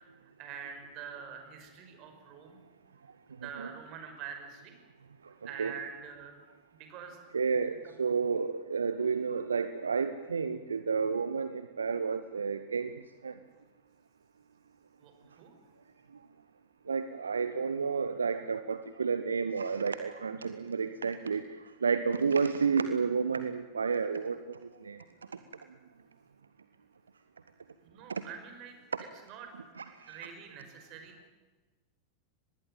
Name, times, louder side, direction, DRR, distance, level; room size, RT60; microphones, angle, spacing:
voice 1, 0.4-2.6 3.4-4.7 5.4-6.4 6.7-7.2 15.0-15.1 15.4-15.5 27.8-28.7 29.2-29.5 30.1-31.3, right 7 dB, 40° right, 6 dB, 5.5 m, -45 dB
voice 2, 3.4-3.7 5.6-5.7 7.3-12.9 13.2-13.3 16.9-25.0 28.1-28.2 28.9-29.0 29.8-30.3, right 5 dB, 75° right, 11 dB, 1.0 m, -31 dB
24.5 x 20.0 x 9.2 m, 1.2 s
figure-of-eight pair, 90°, 0 cm